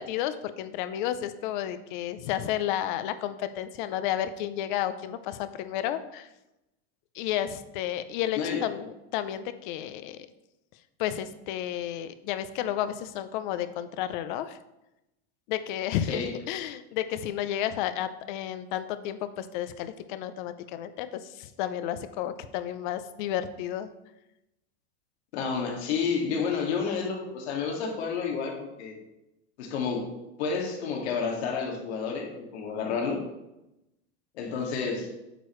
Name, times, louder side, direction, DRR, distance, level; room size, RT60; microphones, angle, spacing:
voice 1, 0.0-6.3 7.1-10.3 11.0-14.6 15.5-23.9, left 11 dB, 45° left, 12 dB, 0.6 m, -32 dB
voice 2, 25.3-29.0 29.6-30.1 30.4-33.2 34.3-35.1, left 5 dB, 70° left, 1 dB, 2.2 m, -30 dB
9.0 x 6.7 x 3.2 m, 0.92 s
supercardioid pair, 165°, 34 cm